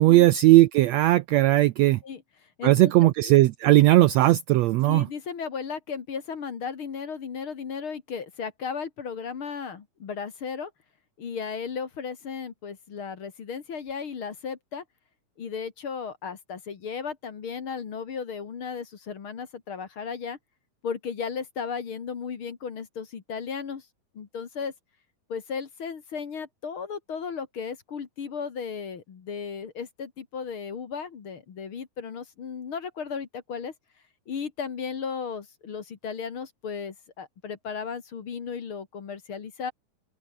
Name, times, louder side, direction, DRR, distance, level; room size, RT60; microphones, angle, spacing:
voice 1, 0.0-2.0 2.6-5.1, right 16 dB, 90° right, 1.5 m, -18 dB
voice 2, 2.6-3.1 4.8-10.7 11.2-14.8 15.4-20.4 20.8-23.9 24.1-24.7 25.3-33.7 34.3-39.7, left 6 dB, 45° left, 2.4 m, -35 dB
open air
omnidirectional pair, 3.8 m